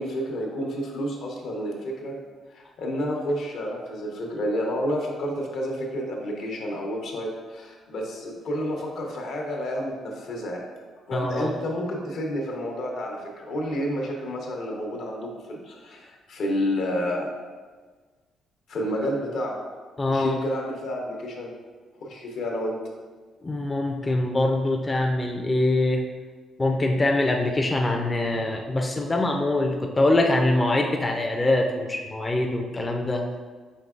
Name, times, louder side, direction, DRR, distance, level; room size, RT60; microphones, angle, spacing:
voice 1, 0.0-2.2 2.5-10.6 11.1-17.3 18.7-19.6 20.1-21.5 22.0-22.8, equal, 75° left, 0 dB, 0.9 m, -30 dB
voice 2, 11.1-11.5 20.0-20.4 23.4-26.0 26.6-33.3, left 2 dB, 20° left, 1 dB, 0.4 m, -23 dB
5.2 x 3.6 x 2.4 m, 1.4 s
cardioid pair, 90°, 0 cm